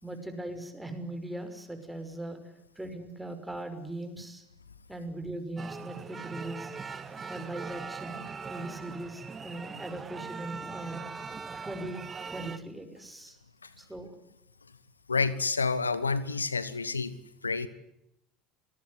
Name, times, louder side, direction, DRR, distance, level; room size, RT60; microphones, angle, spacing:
voice 1, 0.0-2.4 2.8-4.4 4.9-6.8 7.3-11.0 11.6-12.0 12.3-13.4 13.8-14.1, right 1 dB, 5° right, 7 dB, 6.0 m, -39 dB
sound 1, 5.6-12.6, right 5 dB, 30° right, 2.0 m, -41 dB
voice 2, 15.1-17.1 17.4-17.7, left 4 dB, 90° left, 17 dB, 1.2 m, -29 dB
27.5 x 19.5 x 9.5 m, 0.81 s
figure-of-eight pair, 70°, 0 cm